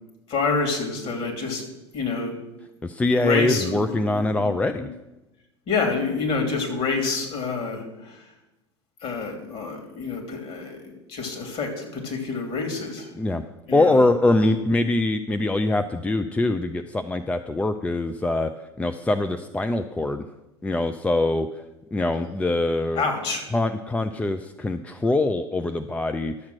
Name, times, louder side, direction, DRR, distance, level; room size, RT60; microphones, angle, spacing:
voice 1, 0.3-1.6 1.9-2.3 3.1-4.9 5.7-8.2 9.0-10.8 11.1-13.1 13.7-14.0 14.4-14.6 23.0-23.4, left 4 dB, 40° left, 3 dB, 3.0 m, -28 dB
voice 2, 2.8-4.9 13.1-13.4 13.7-18.5 18.8-20.2 20.6-21.5 21.9-23.0 23.5-26.3, left 2 dB, 10° left, 8 dB, 0.5 m, -23 dB
12.0 x 7.3 x 6.2 m, 0.98 s
figure-of-eight pair, 75°, 14 cm